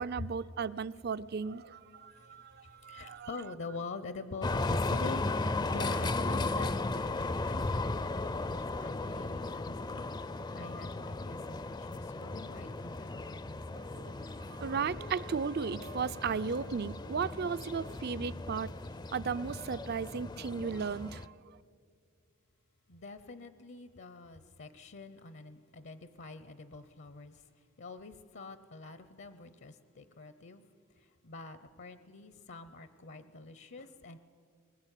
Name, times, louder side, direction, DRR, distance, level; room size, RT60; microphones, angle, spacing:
voice 1, 0.0-3.4 13.8-18.7 19.1-21.6, right 6 dB, 50° right, 16 dB, 0.5 m, -36 dB
voice 2, 2.1-5.2 5.7-7.9 8.4-10.1 10.5-13.8 22.9-27.4 27.8-30.6 31.0-34.2, left 3 dB, 60° left, 12 dB, 0.8 m, -46 dB
sound 1, 4.4-21.3, left 2 dB, 20° left, 0.5 m, -36 dB
22.0 x 20.5 x 9.1 m, 2.4 s
head